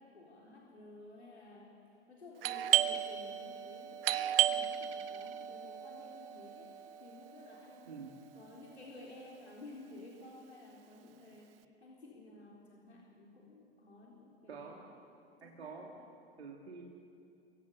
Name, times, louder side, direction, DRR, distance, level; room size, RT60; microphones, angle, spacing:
voice 1, 0.0-1.8 2.1-6.7 7.0-8.0 8.3-14.8 15.4-16.1, left 2 dB, 85° left, -3 dB, 3.8 m, -53 dB
Doorbell, 2.4-7.9, right 12 dB, 60° right, 1.0 m, -34 dB
voice 2, 14.5-14.8 15.4-15.9 16.4-16.8, right 5 dB, 80° right, -1 dB, 2.6 m, -47 dB
27.5 x 24.0 x 7.0 m, 2.5 s
figure-of-eight pair, 90°, 32 cm